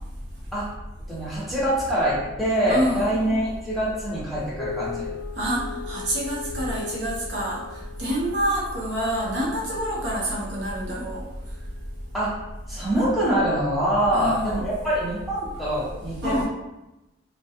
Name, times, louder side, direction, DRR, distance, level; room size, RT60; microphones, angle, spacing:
voice 1, 1.1-5.1 12.1-12.4 12.7-16.5, right 1 dB, ahead, -9 dB, 0.7 m, -24 dB
voice 2, 2.7-3.2 5.4-7.6 8.0-11.2 14.1-14.7 16.2-16.5, equal, 75° right, -5 dB, 0.7 m, -27 dB
sound 1, 4.6-14.2, left 6 dB, 80° left, 0.3 m, -40 dB
2.3 x 2.1 x 2.7 m, 0.97 s
head